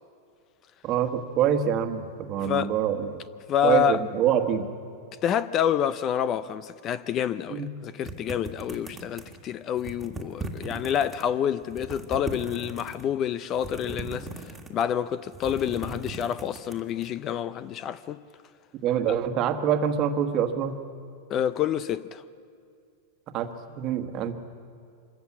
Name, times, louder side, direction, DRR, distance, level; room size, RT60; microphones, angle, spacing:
voice 1, 0.8-3.2 3.6-4.6 7.5-7.7 18.8-20.8 23.3-24.3, right 9 dB, 35° right, 1.4 m, -25 dB
voice 2, 2.4-2.7 3.5-4.0 5.2-18.2 21.3-22.2, left 9 dB, 30° left, 0.5 m, -28 dB
sound 1, 8.0-9.4 9.8-11.2 11.6-13.0 13.5-14.9 15.2-17.1, right 3 dB, 10° right, 1.8 m, -38 dB
24.5 x 14.0 x 8.6 m
supercardioid pair, 150°, 0 cm